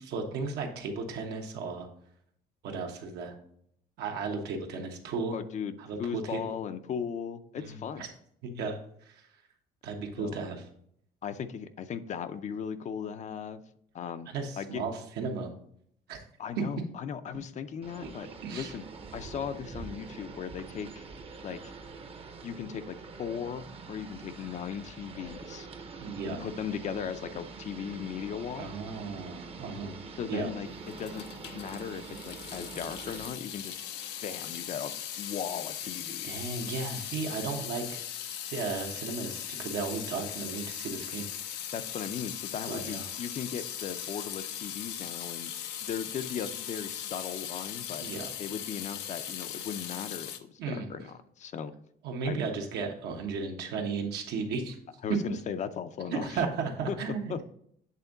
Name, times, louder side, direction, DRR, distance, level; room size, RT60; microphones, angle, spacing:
voice 1, 0.0-1.9 2.6-3.3 4.0-5.4 5.8-6.6 7.6-8.1 8.4-8.8 9.0-9.2 9.8-10.7 14.3-15.5 16.1-16.2 18.4-18.7 26.0-26.4 28.6-30.0 30.3-30.5 36.2-38.0 38.5-41.3 42.7-43.1 48.0-48.3 50.6-50.9 52.0-54.8 56.1-57.4, right 4 dB, 80° right, 3 dB, 1.2 m, -35 dB
voice 2, 5.3-8.0 10.2-10.4 11.2-13.6 13.9-14.8 16.4-18.3 18.5-18.8 19.1-21.0 21.4-21.7 22.4-25.7 26.3-28.7 30.2-31.3 31.6-33.8 34.2-36.3 41.7-45.5 45.8-48.0 48.4-51.7 52.2-52.4 55.0-56.4 56.9-57.0 57.3-57.4, left 7 dB, 45° left, 10 dB, 0.5 m, -37 dB
sound 1, 17.8-33.3, right 4 dB, 35° right, 0.8 m, -45 dB
Water tap faucet / Sink (filling or washing) / Drip, 30.8-50.4, left 10 dB, 85° left, 0.6 m, -39 dB
8.3 x 3.5 x 3.9 m, 0.68 s
cardioid pair, 110°, 17 cm